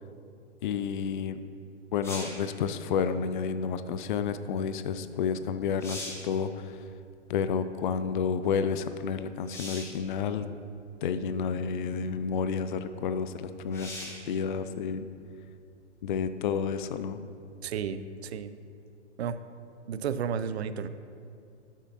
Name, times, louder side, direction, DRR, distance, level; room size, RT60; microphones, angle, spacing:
voice 1, 0.6-1.4 1.9-6.8 7.3-10.5 11.0-13.9 14.3-15.1 16.0-17.2, left 6 dB, 45° left, 11 dB, 0.4 m, -30 dB
sound 1, 2.0-2.5 5.1-5.2 5.6-6.3 9.5-10.0 11.0-11.1 13.7-14.3 17.9-18.0, left 1 dB, 5° left, 1.6 m, -40 dB
voice 2, 17.6-18.5 19.2-19.4 19.9-20.9, right 7 dB, 60° right, 12 dB, 0.6 m, -32 dB
12.5 x 7.3 x 2.9 m, 2.4 s
figure-of-eight pair, 125°, 36 cm